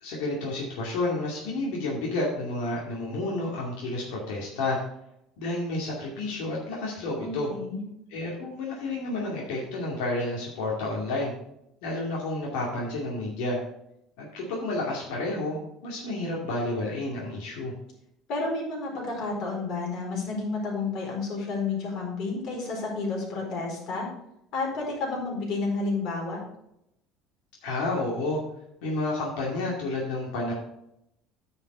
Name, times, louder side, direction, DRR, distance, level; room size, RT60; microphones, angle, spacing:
voice 1, 0.0-4.8 5.4-7.5 8.1-11.3 11.8-13.6 14.2-17.7 27.6-28.4 28.8-30.5, left 2 dB, 85° left, -3 dB, 2.5 m, -30 dB
voice 2, 7.2-7.8 18.3-24.1 24.5-26.4, left 3 dB, 55° left, -2 dB, 4.4 m, -31 dB
10.0 x 5.7 x 5.5 m, 0.80 s
cardioid pair, 150°, 0 cm